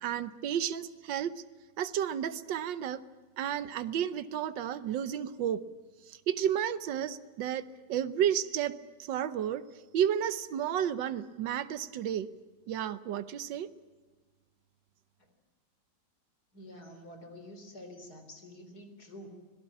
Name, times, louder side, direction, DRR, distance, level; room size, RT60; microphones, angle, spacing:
voice 1, 0.0-1.3 1.8-3.0 3.4-5.6 6.1-9.6 9.9-12.3 12.7-13.7, right 9 dB, 85° right, 14 dB, 1.6 m, -32 dB
voice 2, 16.5-19.3, left 1 dB, 60° left, 6 dB, 4.3 m, -48 dB
25.5 x 18.0 x 8.5 m, 1.4 s
omnidirectional pair, 1.9 m